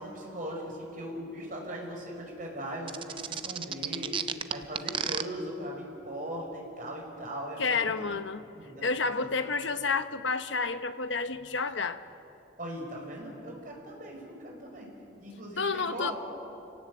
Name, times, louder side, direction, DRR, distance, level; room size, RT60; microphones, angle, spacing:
voice 1, 0.0-4.1 4.5-7.9 8.6-8.9 9.2-9.3 11.5-11.6 12.6-14.9 15.2-16.1, equal, 45° right, 0 dB, 5.5 m, -39 dB
sound 1, 2.9-5.2, right 7 dB, 25° right, 0.6 m, -31 dB
voice 2, 7.6-8.4 8.8-12.0 15.6-16.1, left 4 dB, 80° left, 10 dB, 1.0 m, -30 dB
29.0 x 18.0 x 8.0 m, 2.8 s
head